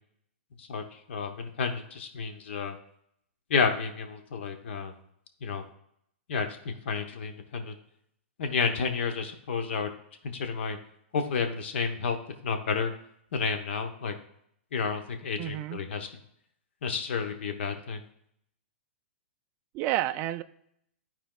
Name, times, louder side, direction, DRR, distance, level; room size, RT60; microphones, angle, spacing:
voice 1, 0.6-2.8 3.5-5.0 5.4-5.7 6.3-7.7 8.4-9.9 10.2-10.8 11.1-12.2 12.4-12.9 13.3-14.2 14.7-16.1 16.8-18.0, left 5 dB, 65° left, 6 dB, 1.0 m, -31 dB
voice 2, 15.4-15.8 19.7-20.4, right 14 dB, 30° right, 12 dB, 0.3 m, -30 dB
12.0 x 4.4 x 2.4 m, 0.72 s
hypercardioid pair, 145°, 7 cm